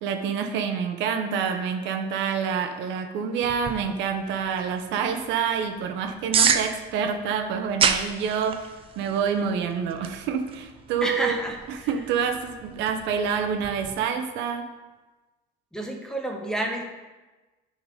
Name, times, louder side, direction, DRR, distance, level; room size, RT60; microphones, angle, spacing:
voice 1, 0.0-8.7 9.0-11.4 11.9-14.7, right 6 dB, 60° right, 5 dB, 0.9 m, -27 dB
sound 1, 3.4-14.0, right 6 dB, 25° right, 0.5 m, -31 dB
voice 2, 11.0-12.0 15.7-16.8, right 1 dB, 5° left, 2 dB, 1.0 m, -30 dB
9.3 x 4.0 x 5.2 m, 1.2 s
cardioid pair, 130°, 21 cm